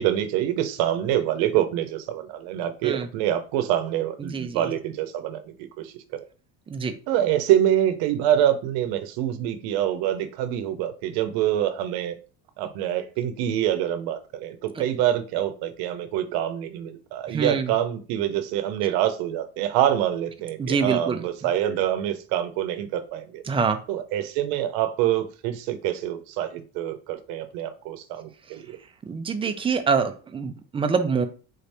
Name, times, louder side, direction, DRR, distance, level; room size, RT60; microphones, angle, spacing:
voice 1, 0.0-6.2 7.1-12.2 12.6-23.4 23.9-28.8, right 11 dB, 80° right, 9 dB, 0.7 m, -26 dB
voice 2, 4.2-4.7 6.7-6.9 14.8-14.9 17.3-17.7 20.6-21.2 23.5-23.8 29.1-31.3, right 5 dB, 15° right, 8 dB, 0.4 m, -25 dB
3.9 x 2.6 x 3.3 m, 0.35 s
cardioid pair, 130°, 36 cm